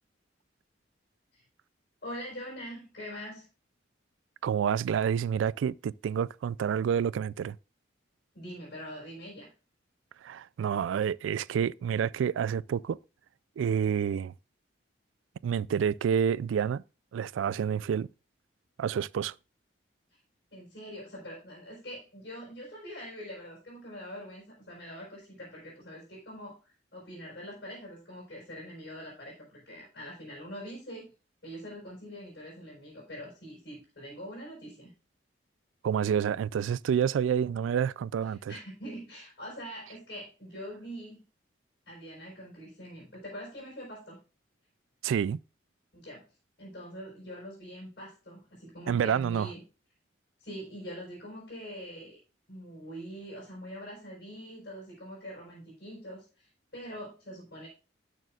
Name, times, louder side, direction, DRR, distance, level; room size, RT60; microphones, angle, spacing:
voice 1, 2.0-3.5 8.3-9.5 20.5-31.1 31.4-34.9 38.3-41.2 41.9-44.2 45.9-46.2 46.6-49.6 50.4-52.2 52.5-57.7, equal, 60° left, 4.8 m, -44 dB
voice 2, 4.4-7.6 10.2-13.0 13.6-14.3 15.4-16.8 17.1-18.1 18.8-19.3 35.8-38.5 45.0-45.4 48.9-49.5, right 7 dB, 90° right, 0.3 m, -28 dB
12.5 x 6.6 x 2.4 m
head